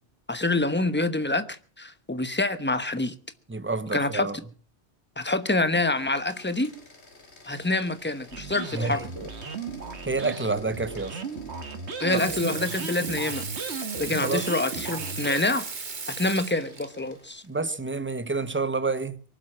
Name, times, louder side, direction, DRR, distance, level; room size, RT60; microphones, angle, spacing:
voice 1, 0.3-3.1 3.9-4.3 5.2-6.7 7.4-9.1 12.0-13.4 14.0-15.7 16.1-17.4, left 2 dB, 10° left, 1.0 m, -26 dB
voice 2, 3.5-4.4 8.7-9.0 10.1-11.2 12.1-12.3 14.1-14.5 17.4-19.2, right 3 dB, 10° right, 0.8 m, -29 dB
sound 1, 5.9-17.6, left 2 dB, 80° left, 2.7 m, -50 dB
sound 2, 8.3-15.4, right 4 dB, 85° right, 1.7 m, -36 dB
Water tap faucet / Sink (filling or washing), 12.2-16.9 18.4-18.5, right 5 dB, 45° right, 1.2 m, -36 dB
23.5 x 8.0 x 7.3 m
omnidirectional pair, 1.1 m